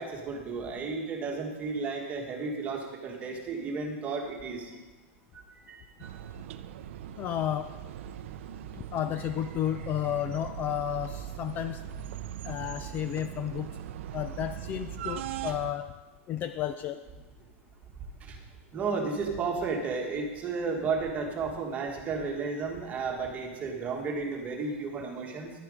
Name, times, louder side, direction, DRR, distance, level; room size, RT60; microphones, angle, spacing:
voice 1, 0.0-4.7 5.7-5.9 18.2-18.4 18.7-25.5, right 4 dB, 20° right, 2 dB, 1.6 m, -33 dB
sound 1, 6.0-15.7, right 10 dB, 65° right, 0.5 m, -40 dB
voice 2, 7.2-7.7 8.9-11.8 12.4-13.7 14.1-15.9 16.3-17.0, left 11 dB, 25° left, 10 dB, 0.3 m, -32 dB
11.0 x 9.3 x 5.0 m, 1.2 s
supercardioid pair, 160°, 7 cm